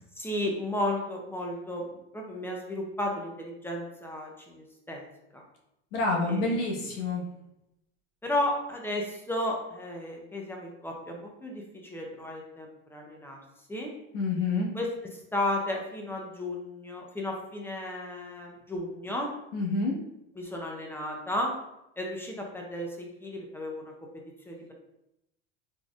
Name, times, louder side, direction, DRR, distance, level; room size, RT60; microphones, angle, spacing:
voice 1, 0.2-5.1 5.3-5.4 6.3-6.9 8.2-13.4 13.7-13.9 14.7-14.9 15.1-19.3 20.3-21.5 22.0-23.9 24.5-24.7, left 1 dB, 5° left, 0 dB, 0.7 m, -34 dB
voice 2, 5.9-7.2 14.1-14.7 19.5-19.9, left 3 dB, 75° left, -2 dB, 1.3 m, -28 dB
3.9 x 3.3 x 2.4 m, 0.85 s
supercardioid pair, 105°, 36 cm